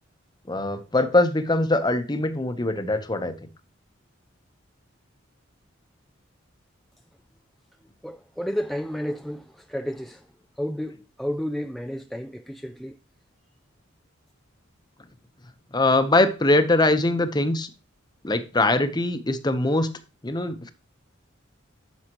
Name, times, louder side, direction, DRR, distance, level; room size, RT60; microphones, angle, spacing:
voice 1, 0.5-3.3 15.7-17.7 18.2-19.9 20.2-20.7, left 2 dB, 20° left, 0.8 m, -22 dB
voice 2, 8.0-10.3 10.6-13.0, equal, ahead, 0.3 m, -31 dB
9.8 x 7.2 x 2.9 m
head